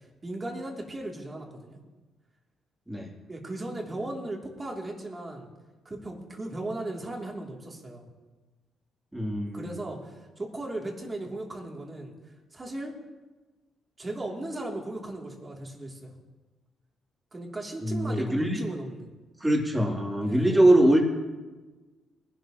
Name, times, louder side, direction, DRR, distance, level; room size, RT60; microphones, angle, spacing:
voice 1, 0.0-1.8 3.3-5.5 5.8-8.1 9.5-12.1 12.5-12.9 14.0-16.1 17.3-19.1 20.2-20.6, right 1 dB, 25° right, -1 dB, 3.2 m, -37 dB
voice 2, 9.1-9.7 17.8-18.6 19.4-21.0, right 1 dB, 10° right, -2 dB, 3.5 m, -23 dB
21.0 x 12.0 x 3.1 m, 1.2 s
cardioid pair, 90°, 0 cm